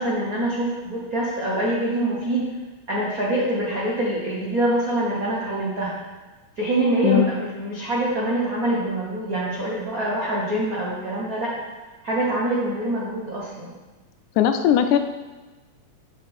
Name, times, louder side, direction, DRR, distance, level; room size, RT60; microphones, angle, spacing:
voice 1, 0.0-2.5 2.9-5.9 6.6-11.6 12.0-13.7, right 1 dB, 70° right, -5 dB, 0.8 m, -25 dB
voice 2, 14.4-15.0, left 10 dB, 85° left, 8 dB, 2.0 m, -18 dB
7.6 x 7.0 x 3.5 m, 1.2 s
omnidirectional pair, 3.4 m